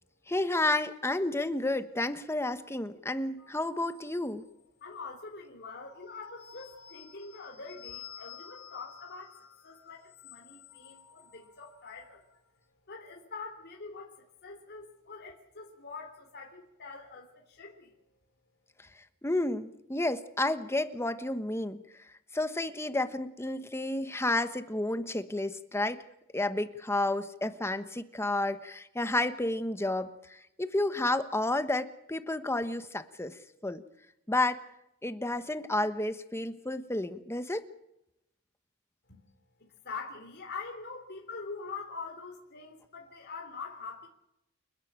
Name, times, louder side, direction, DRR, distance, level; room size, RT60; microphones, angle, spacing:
voice 1, 0.3-4.4 19.2-21.8 22.3-26.0 26.3-33.8 34.3-34.6 35.0-37.7, left 2 dB, 10° left, 11 dB, 1.2 m, -31 dB
sound 1, 3.4-4.8 5.7-12.4, left 7 dB, 75° left, 5.6 m, -52 dB
voice 2, 4.8-9.4 9.6-12.3 12.9-18.0 39.6-44.1, left 4 dB, 50° left, 1 dB, 3.5 m, -44 dB
29.5 x 12.0 x 8.9 m, 0.83 s
head